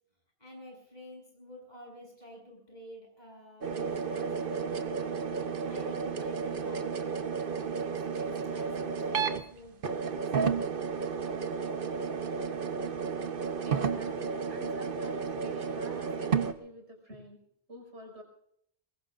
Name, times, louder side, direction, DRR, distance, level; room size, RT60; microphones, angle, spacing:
voice 1, 0.4-5.1 5.7-10.6, equal, 40° left, 0 dB, 7.7 m, -51 dB
sound 1, 3.6-9.4 9.8-16.5, right 5 dB, 55° right, 1.1 m, -32 dB
voice 2, 13.7-17.4 17.7-18.2, equal, 80° right, 1 dB, 5.8 m, -49 dB
23.5 x 21.0 x 2.5 m, 0.72 s
omnidirectional pair, 1.1 m